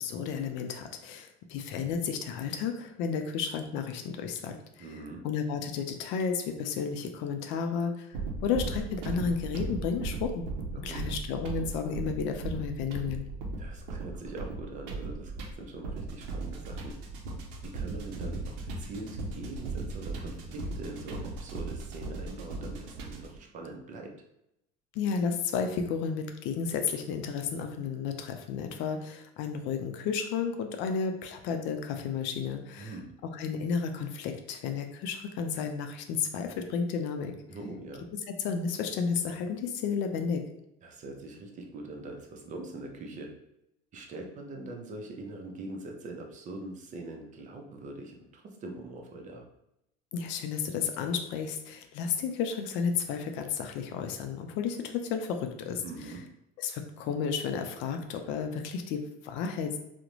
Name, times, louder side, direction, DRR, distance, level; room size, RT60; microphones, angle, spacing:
voice 1, 0.0-4.8 5.2-8.2 8.4-10.5 10.7-13.3 24.9-32.9 33.3-37.3 38.4-40.4 50.1-55.8 56.6-59.8, left 6 dB, 65° left, 6 dB, 0.4 m, -32 dB
voice 2, 4.8-5.2 10.7-11.2 13.6-15.3 15.6-16.9 17.7-24.1 32.8-33.1 37.5-38.0 40.8-43.3 43.9-49.5 55.8-56.2, right 2 dB, 35° right, 2 dB, 0.5 m, -42 dB
sound 1, 8.1-23.4, right 3 dB, 80° right, 0.6 m, -37 dB
2.4 x 2.1 x 3.0 m, 0.83 s
supercardioid pair, 110°, 21 cm